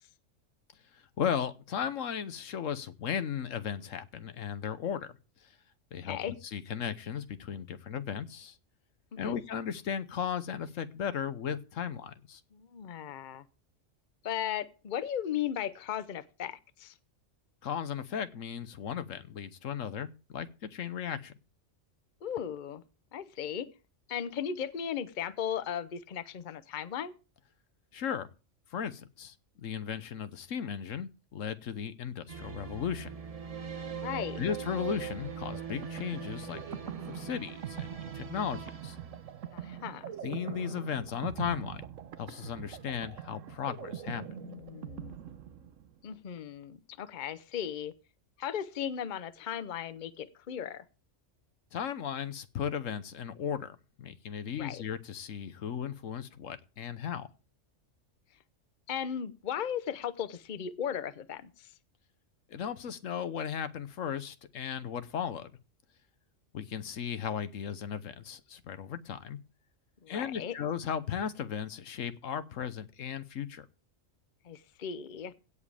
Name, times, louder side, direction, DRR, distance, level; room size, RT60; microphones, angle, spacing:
voice 1, 0.9-5.1 5.9-8.6 9.2-12.4 17.6-21.3 27.9-28.3 28.7-33.1 34.4-36.6 37.1-39.0 40.2-41.8 42.2-44.2 51.7-57.3 62.5-65.5 66.5-69.4 70.1-73.7, left 8 dB, 85° left, 12 dB, 1.3 m, -36 dB
voice 2, 6.0-6.3 9.1-9.4 12.5-13.4 14.2-16.9 22.2-22.8 23.1-23.7 24.1-27.1 34.0-34.4 39.5-40.1 44.4-45.2 46.0-47.9 48.4-50.8 54.6-54.8 58.9-61.7 70.0-70.6 74.4-75.3, left 9 dB, 45° left, 14 dB, 0.8 m, -36 dB
sound 1, 32.3-39.8, right 7 dB, 30° right, 1.0 m, -41 dB
sound 2, 35.5-46.1, right 9 dB, 80° right, 1.2 m, -43 dB
17.0 x 7.4 x 3.4 m, 0.33 s
omnidirectional pair, 1.3 m